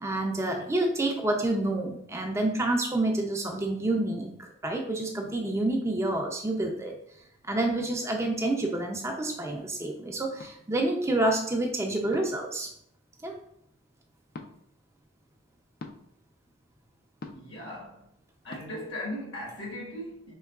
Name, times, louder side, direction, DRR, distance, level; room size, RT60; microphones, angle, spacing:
voice 1, 0.0-6.9 7.4-12.7 13.2-13.3, right 2 dB, 15° right, 0.4 m, -28 dB
sound 1, 10.4-10.6 12.1-12.5 14.3-14.5 15.8-16.0 17.2-17.5 18.5-18.6, left 3 dB, 50° left, 0.4 m, -42 dB
voice 2, 17.3-18.1 18.4-20.3, left 1 dB, 65° left, 1.4 m, -38 dB
4.6 x 3.0 x 2.3 m
head